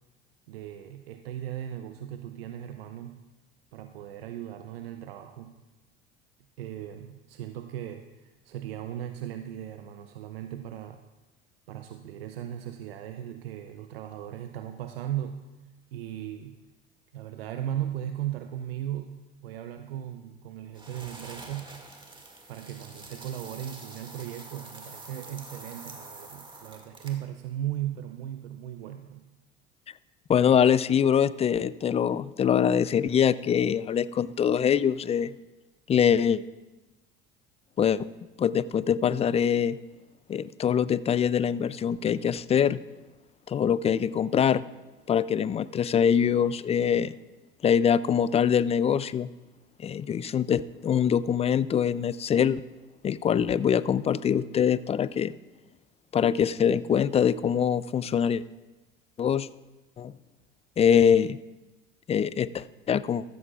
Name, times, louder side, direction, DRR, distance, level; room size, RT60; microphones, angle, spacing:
voice 1, 0.5-3.2 3.7-5.6 6.6-11.0 11.7-15.4 15.9-16.6 17.1-21.8 22.5-29.3, right 11 dB, 90° right, 7 dB, 0.6 m, -37 dB
sound 1, 20.8-27.3, right 2 dB, 15° right, 2.0 m, -46 dB
voice 2, 30.3-35.4 35.9-36.4 37.8-38.1 38.4-39.8 40.3-42.8 43.5-44.6 45.1-47.1 47.6-49.3 49.8-52.6 53.0-55.3 56.1-58.4 59.2-59.5 60.0-60.1 60.8-61.4 62.1-63.2, left 8 dB, 20° left, 18 dB, 0.3 m, -24 dB
14.0 x 13.5 x 2.4 m, 1.1 s
hypercardioid pair, 75°, 29 cm